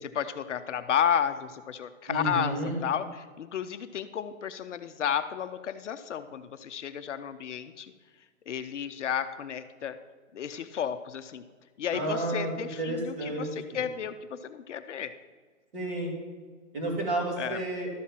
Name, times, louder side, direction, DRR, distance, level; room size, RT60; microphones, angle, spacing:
voice 1, 0.0-7.9 8.5-10.0 10.3-11.4 11.8-15.1 17.4-17.6, left 8 dB, 60° left, 10 dB, 0.6 m, -32 dB
voice 2, 2.1-2.8 11.9-12.5 12.8-13.5 15.7-16.1 16.7-17.9, right 1 dB, 40° right, -3 dB, 3.2 m, -31 dB
12.0 x 4.2 x 7.4 m, 1.5 s
hypercardioid pair, 175°, 41 cm